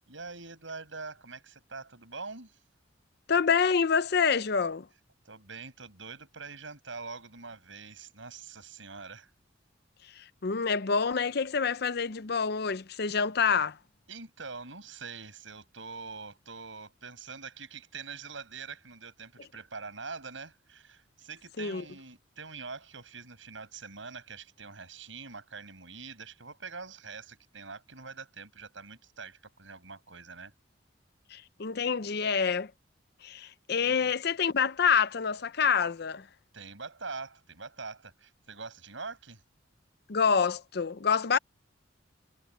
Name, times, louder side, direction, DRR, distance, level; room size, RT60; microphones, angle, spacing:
voice 1, 0.1-2.6 5.2-9.3 14.1-30.5 33.8-34.1 36.5-39.4, right 4 dB, 85° right, 5.7 m, -44 dB
voice 2, 3.3-4.9 10.1-13.8 21.6-21.8 31.3-32.7 33.2-36.3 40.1-41.4, left 6 dB, 55° left, 0.6 m, -27 dB
head